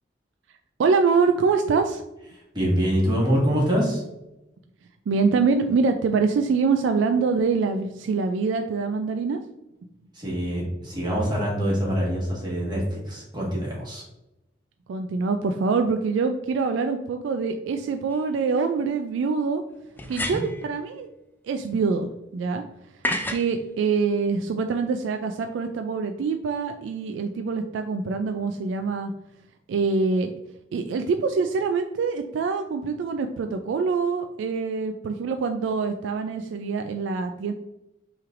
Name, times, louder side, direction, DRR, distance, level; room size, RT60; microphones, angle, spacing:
voice 1, 0.8-2.0 5.1-9.4 14.9-19.6 20.1-21.1 21.4-22.6 23.3-29.1 29.7-30.3 30.7-37.5, right 4 dB, 80° right, 6 dB, 0.3 m, -24 dB
voice 2, 2.3-4.0 10.1-14.0 20.0-20.4, equal, 25° right, -4 dB, 1.5 m, -25 dB
sound 1, 18.1-18.2 20.0-20.7 23.0-23.5, left 1 dB, 10° left, 0.3 m, -29 dB
5.7 x 3.2 x 2.5 m, 0.92 s
head